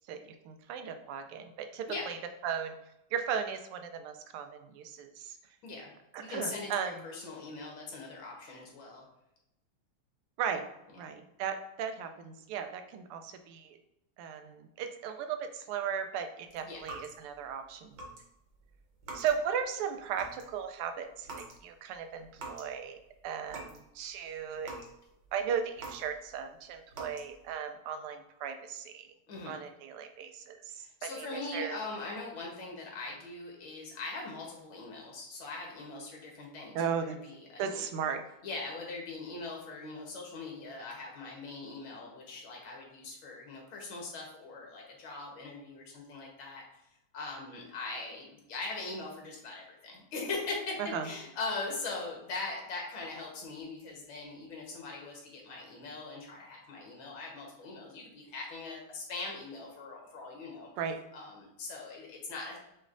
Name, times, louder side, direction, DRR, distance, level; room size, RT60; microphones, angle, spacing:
voice 1, 0.1-2.2 2.4-2.7 3.1-5.4 6.1-6.9 10.4-10.7 11.0-13.8 14.2-18.0 19.1-23.0 23.2-24.8 25.3-29.1 29.5-31.8 36.7-37.2 37.6-38.2 50.8-51.1 60.8-61.0, right 7 dB, 90° right, 7 dB, 1.5 m, -36 dB
voice 2, 6.2-9.1 16.6-16.9 29.3-29.6 30.8-37.8 38.4-46.8 47.1-60.7 61.1-62.6, left 3 dB, 70° left, -1 dB, 1.9 m, -41 dB
sound 1, 16.8-17.5 17.9-18.2 18.5-19.6 20.0-20.6 21.2-21.6 21.9-22.8 23.1-23.9 24.2-26.4 26.9-27.5, right 2 dB, 60° right, 1.6 m, -46 dB
6.0 x 3.2 x 2.5 m, 0.85 s
omnidirectional pair, 2.4 m